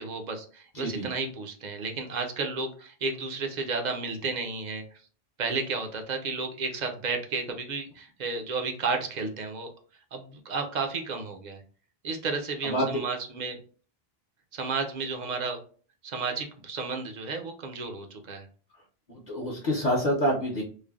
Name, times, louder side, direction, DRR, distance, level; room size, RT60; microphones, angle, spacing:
voice 1, 0.0-4.8 5.4-9.7 10.1-11.6 12.0-13.6 14.5-15.6 16.0-18.5, right 4 dB, 55° right, 4 dB, 0.6 m, -32 dB
voice 2, 0.7-1.1 12.6-13.0 19.3-20.6, equal, 50° left, -1 dB, 0.7 m, -27 dB
3.2 x 2.0 x 2.3 m, 0.41 s
omnidirectional pair, 1.0 m